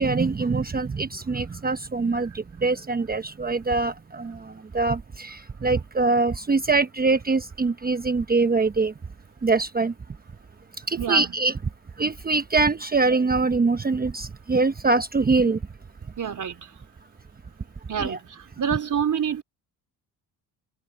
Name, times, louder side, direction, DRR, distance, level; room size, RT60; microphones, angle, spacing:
voice 1, 0.0-8.9 9.4-9.9 10.9-11.6 12.0-15.6 18.0-18.2, right 3 dB, 20° right, 1.0 m, -23 dB
voice 2, 16.2-16.6 17.9-18.2 18.6-19.4, right 8 dB, 45° right, 3.6 m, -26 dB
cardioid pair, 80°, 41 cm